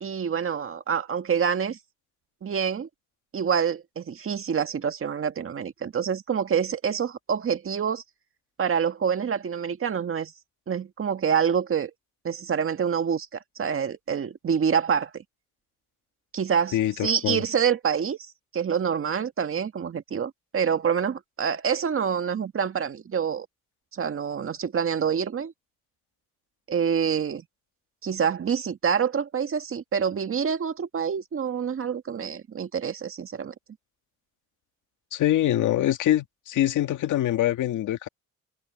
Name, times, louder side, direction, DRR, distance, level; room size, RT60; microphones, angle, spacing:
voice 1, 0.0-1.8 2.4-2.9 3.3-8.0 8.6-10.3 10.7-11.9 12.2-15.2 16.3-23.5 23.9-25.5 26.7-27.4 28.0-33.5, right 7 dB, 45° right, 1.8 m, -26 dB
voice 2, 16.7-17.4 35.1-38.1, left 13 dB, 80° left, 2.1 m, -24 dB
cardioid pair, 90°, 30 cm